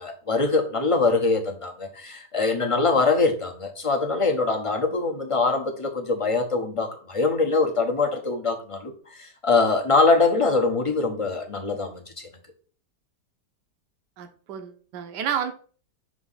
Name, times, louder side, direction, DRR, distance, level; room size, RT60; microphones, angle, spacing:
voice 1, 0.0-12.1, left 3 dB, 25° left, 2 dB, 0.7 m, -23 dB
voice 2, 14.2-15.5, right 8 dB, 75° right, 7 dB, 1.4 m, -30 dB
6.2 x 2.9 x 5.7 m, 0.43 s
omnidirectional pair, 1.9 m